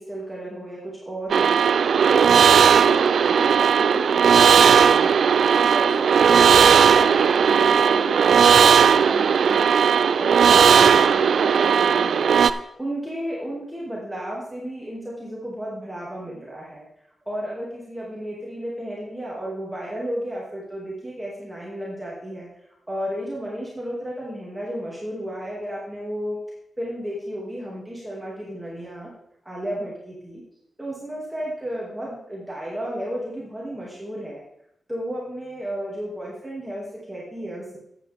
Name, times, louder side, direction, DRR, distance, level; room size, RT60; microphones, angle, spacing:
voice 1, 0.0-1.7 2.0-5.2 5.6-9.8 10.2-12.4 12.8-16.9 17.3-22.5 22.9-26.4 26.8-29.1 29.4-30.4 30.8-34.4 34.9-37.8, equal, 5° right, -5 dB, 2.3 m, -33 dB
sound 1, 1.3-12.5, right 7 dB, 80° right, 0.4 m, -16 dB
12.5 x 8.5 x 3.5 m, 0.77 s
wide cardioid pair, 125°, 0 cm